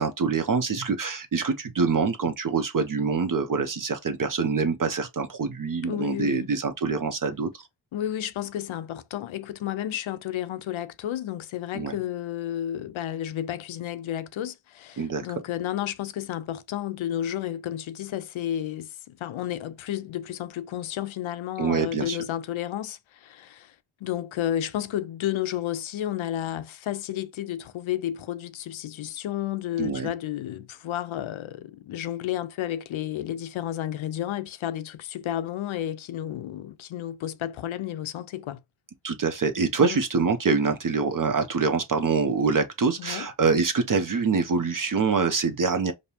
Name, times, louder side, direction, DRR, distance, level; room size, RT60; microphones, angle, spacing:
voice 1, 0.0-7.6 11.7-11.9 15.0-15.3 21.6-22.2 29.8-30.1 39.0-45.9, right 5 dB, 45° right, 0.6 m, -25 dB
voice 2, 5.8-6.5 7.9-23.7 24.0-38.6 39.8-40.0 43.0-43.3, left 11 dB, 80° left, 0.6 m, -32 dB
5.2 x 2.0 x 2.8 m
cardioid pair, 80°, 48 cm